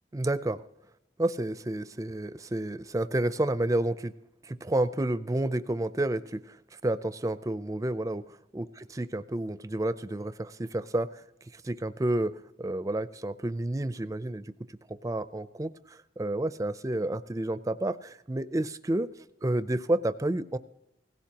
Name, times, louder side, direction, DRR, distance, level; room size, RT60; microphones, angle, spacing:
voice 1, 0.1-0.6 1.2-4.1 4.4-6.6 6.8-8.2 8.5-11.1 11.5-14.4 14.9-19.1 19.4-20.6, right 1 dB, 20° right, 14 dB, 0.4 m, -30 dB
17.5 x 16.5 x 2.9 m, 0.85 s
head